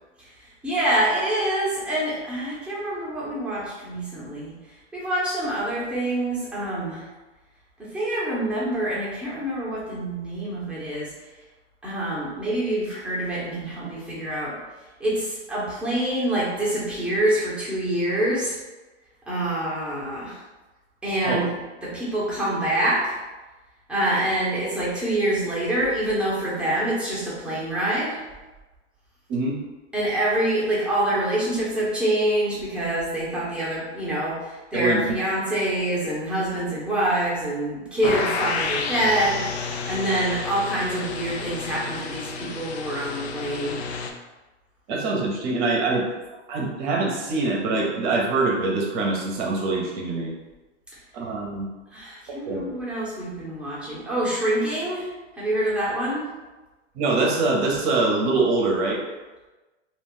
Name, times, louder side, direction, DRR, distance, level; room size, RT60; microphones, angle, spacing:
voice 1, 0.2-4.5 4.9-7.0 7.8-11.1 11.8-14.6 15.0-18.6 19.3-20.4 21.0-21.5 21.8-23.2 23.9-28.2 29.9-39.4 39.9-43.8 51.9-55.1 55.4-56.3, right 1 dB, 5° right, -8 dB, 0.9 m, -26 dB
voice 2, 34.7-35.1 44.9-46.1 46.5-50.3 51.1-51.7 52.3-52.7 57.0-59.0, right 3 dB, 40° right, -1 dB, 0.8 m, -24 dB
sound 1, 38.0-44.1, left 5 dB, 65° left, 0.5 m, -30 dB
2.5 x 2.3 x 3.6 m, 1.2 s
hypercardioid pair, 115°, 36 cm